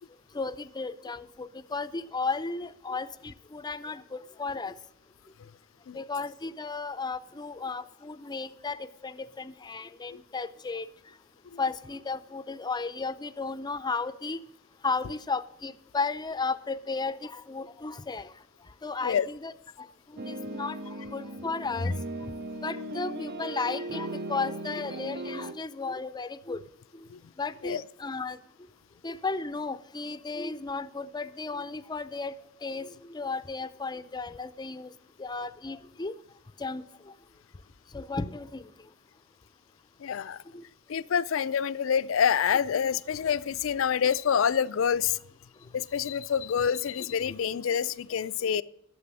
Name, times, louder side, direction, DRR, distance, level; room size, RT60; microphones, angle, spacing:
voice 1, 0.3-4.8 5.9-10.9 11.6-14.4 14.8-18.3 18.8-19.5 19.8-19.9 20.1-22.0 22.6-26.6 27.4-28.4 29.0-32.3 32.6-34.9 35.2-36.1 36.6-36.8 37.9-38.7 40.5-40.6, left 4 dB, 20° left, 14 dB, 0.5 m, -34 dB
sound 1, 20.2-25.5, right 1 dB, 50° right, 0.6 m, -37 dB
voice 2, 40.0-40.4 40.9-45.2 45.7-48.6, left 7 dB, 70° left, 17 dB, 0.4 m, -27 dB
11.5 x 7.6 x 6.0 m, 0.80 s
head